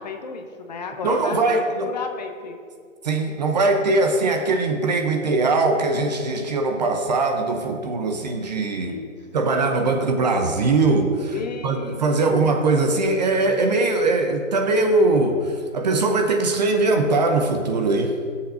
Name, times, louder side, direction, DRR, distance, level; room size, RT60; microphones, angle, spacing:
voice 1, 0.0-1.4 1.8-2.6 8.8-9.2 11.3-12.0 12.3-12.5, left 4 dB, 35° left, 4 dB, 0.7 m, -33 dB
voice 2, 1.0-1.9 3.0-9.0 9.3-11.3 11.6-18.1, right 3 dB, 35° right, 4 dB, 0.7 m, -21 dB
21.0 x 7.0 x 2.6 m, 2.1 s
hypercardioid pair, 155°, 39 cm